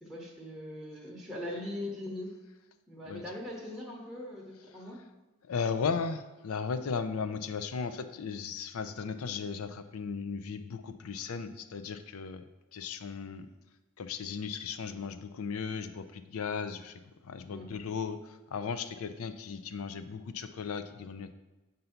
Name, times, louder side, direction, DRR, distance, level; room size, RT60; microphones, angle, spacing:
voice 1, 0.0-2.3 2.9-5.0 17.5-17.7, left 1 dB, ahead, -6 dB, 0.9 m, -40 dB
voice 2, 5.4-12.4 12.7-13.5 14.0-21.3, left 5 dB, 75° left, 9 dB, 0.5 m, -36 dB
7.8 x 2.7 x 5.6 m, 1.1 s
head